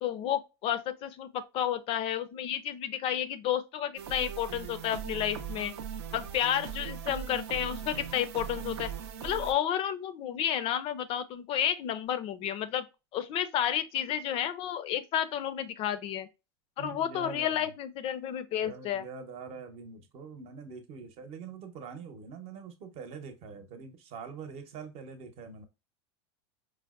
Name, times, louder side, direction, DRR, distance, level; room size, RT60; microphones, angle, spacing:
voice 1, 0.0-5.7 6.1-8.9 9.2-12.9 13.1-16.3 16.8-19.0, left 10 dB, 40° left, 0.5 m, -31 dB
sound 1, 4.0-9.5, right 8 dB, 75° right, 0.6 m, -39 dB
voice 2, 16.8-17.7 18.6-25.7, right 5 dB, 45° right, 0.8 m, -44 dB
4.6 x 2.1 x 2.3 m
supercardioid pair, 115°, 14 cm